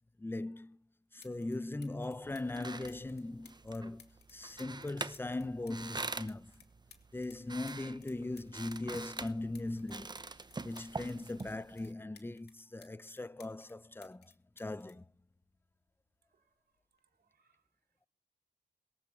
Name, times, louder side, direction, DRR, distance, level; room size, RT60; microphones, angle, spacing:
voice 1, 0.2-0.8 1.1-6.5 7.1-10.2 10.6-15.1, left 2 dB, 15° left, 0.7 m, -40 dB
sound 1, 0.7-0.8 1.2-1.6 1.8-7.4 7.7-11.5 11.8-13.7 14.0-15.8 16.8-17.0, left 6 dB, 80° left, 2.4 m, -60 dB
sound 2, 2.2-11.9, right 3 dB, 25° right, 0.9 m, -45 dB
voice 2, 16.3-18.1, right 5 dB, 70° right, 3.2 m, -79 dB
22.0 x 8.2 x 5.9 m
cardioid pair, 80°, 17 cm